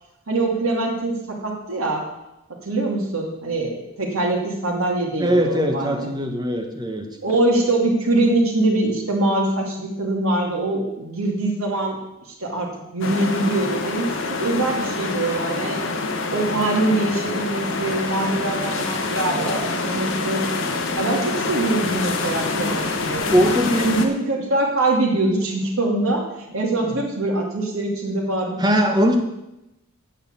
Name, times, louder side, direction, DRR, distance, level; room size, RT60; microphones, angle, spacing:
voice 1, 0.3-2.0 2.6-6.0 7.2-12.0 12.3-15.8 16.3-20.4 21.0-23.2 23.8-28.8, right 2 dB, 70° right, 0 dB, 2.6 m, -23 dB
voice 2, 5.2-7.1 23.3-23.9 26.6-27.0 28.6-29.2, equal, 20° right, 3 dB, 1.2 m, -21 dB
sound 1, 13.0-24.1, left 3 dB, 55° left, 1.2 m, -26 dB
9.1 x 6.6 x 8.1 m, 0.92 s
head